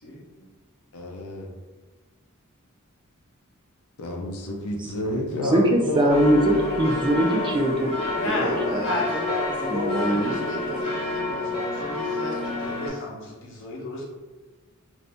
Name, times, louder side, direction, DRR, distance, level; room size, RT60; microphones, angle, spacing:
voice 1, 0.0-0.5 8.2-9.1 9.6-14.0, left 1 dB, 60° left, -3 dB, 0.9 m, -33 dB
voice 2, 0.9-1.5 4.0-6.0, left 1 dB, 90° left, 1 dB, 0.6 m, -30 dB
voice 3, 4.8-7.9 8.2-10.5, right 1 dB, 20° right, 2 dB, 0.3 m, -23 dB
sound 1, 5.8-10.8, left 3 dB, ahead, 0.9 m, -38 dB
sound 2, 6.1-12.9, left 2 dB, 25° left, 1.0 m, -29 dB
2.6 x 2.6 x 3.3 m, 1.3 s
head